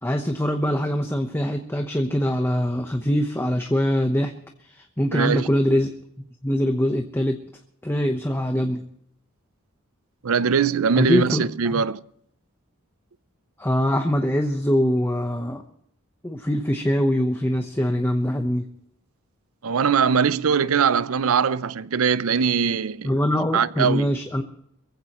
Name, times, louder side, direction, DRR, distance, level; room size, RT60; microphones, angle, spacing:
voice 1, 0.0-4.3 5.0-5.9 6.4-7.4 7.8-8.8 11.0-11.8 13.6-15.6 16.2-18.7 23.0-24.4, equal, 10° left, 0.9 m, -23 dB
voice 2, 5.1-5.5 10.2-12.0 19.6-23.1 23.5-24.1, right 6 dB, 85° right, 0.6 m, -21 dB
22.5 x 15.0 x 3.0 m
head